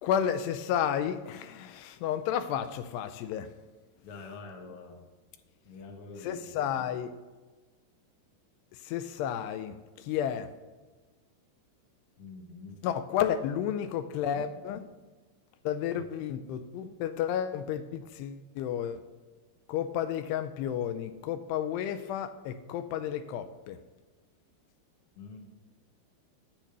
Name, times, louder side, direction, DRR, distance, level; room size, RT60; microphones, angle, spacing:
voice 1, 0.0-3.5 6.2-7.1 8.8-10.5 12.8-14.9 15.7-19.0 19.7-23.8, left 9 dB, 85° left, 10 dB, 2.6 m, -32 dB
voice 2, 4.0-5.0 5.6-6.7 12.2-12.8 15.9-16.1 25.1-25.4, left 3 dB, 60° left, 2 dB, 1.5 m, -46 dB
8.8 x 7.3 x 6.6 m, 1.3 s
omnidirectional pair, 4.9 m